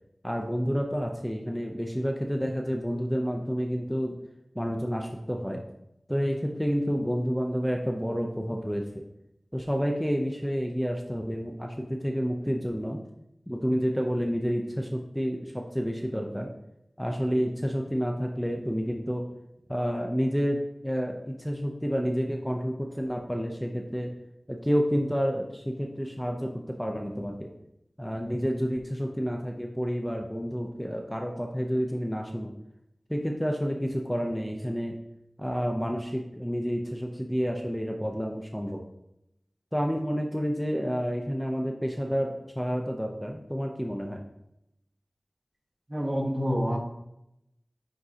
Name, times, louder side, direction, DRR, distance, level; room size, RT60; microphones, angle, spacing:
voice 1, 0.2-4.2 4.5-5.6 6.1-9.0 9.5-13.0 13.5-16.5 17.0-19.2 19.7-24.1 24.5-27.5 28.0-32.5 33.1-35.0 35.4-38.8 39.7-44.3, equal, 5° left, 1 dB, 0.6 m, -29 dB
voice 2, 45.9-46.8, equal, 35° right, 0 dB, 1.3 m, -27 dB
9.5 x 3.7 x 2.8 m, 0.83 s
wide cardioid pair, 50°, 0 cm